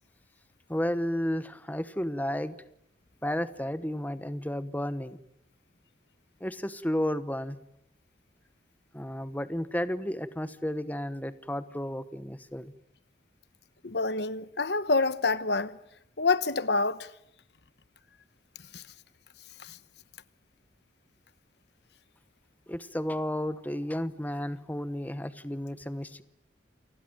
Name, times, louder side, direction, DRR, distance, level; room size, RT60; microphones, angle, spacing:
voice 1, 0.7-2.6 3.2-5.2 6.4-7.6 8.9-12.7 22.7-26.2, left 1 dB, 10° left, 1.0 m, -32 dB
voice 2, 13.8-15.8 16.2-17.1 18.7-18.8 19.6-19.8, left 3 dB, 65° left, 1.0 m, -27 dB
29.0 x 20.5 x 9.2 m
head